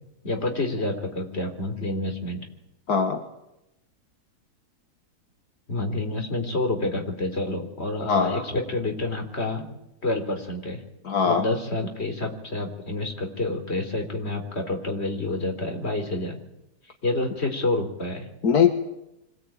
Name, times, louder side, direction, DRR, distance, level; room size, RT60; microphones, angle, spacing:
voice 1, 0.2-2.4 5.7-9.7 10.0-10.8 11.2-16.4 17.0-18.3, left 2 dB, 40° left, 4 dB, 4.0 m, -28 dB
voice 2, 2.9-3.2 8.1-8.5 11.0-11.5 18.4-18.7, left 6 dB, 75° left, 5 dB, 2.1 m, -21 dB
25.0 x 18.0 x 9.1 m, 0.87 s
omnidirectional pair, 1.7 m